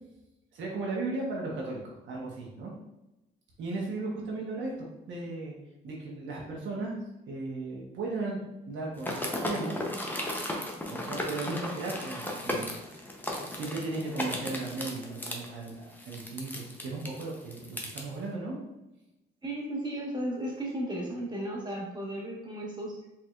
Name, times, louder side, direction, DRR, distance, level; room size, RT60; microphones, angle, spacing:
voice 1, 0.5-2.7 3.6-5.6 5.8-7.0 7.3-9.8 10.9-13.0 13.5-18.6, right 3 dB, 70° right, -3 dB, 1.1 m, -36 dB
sound 1, 9.0-18.0, left 1 dB, 10° left, 0.8 m, -35 dB
voice 2, 19.4-23.0, right 1 dB, 20° right, -2 dB, 1.4 m, -35 dB
4.5 x 3.8 x 2.5 m, 0.95 s
cardioid pair, 90°, 20 cm